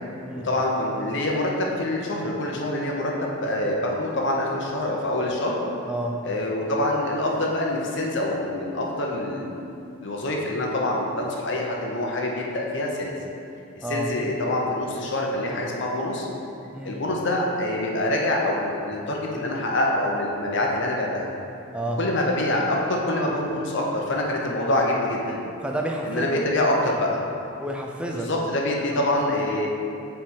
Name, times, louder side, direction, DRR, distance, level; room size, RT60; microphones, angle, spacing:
voice 1, 0.4-5.6 6.2-9.6 10.0-13.1 13.8-16.3 16.8-21.3 22.0-25.4 26.0-27.2 28.1-29.7, left 1 dB, 55° left, -1 dB, 0.7 m, -25 dB
voice 2, 5.9-6.2 13.8-14.1 16.7-16.9 21.7-22.0 25.6-26.4 27.6-28.3 28.9-29.0, right 1 dB, 5° right, 0 dB, 0.4 m, -29 dB
7.1 x 3.3 x 4.5 m, 2.7 s
head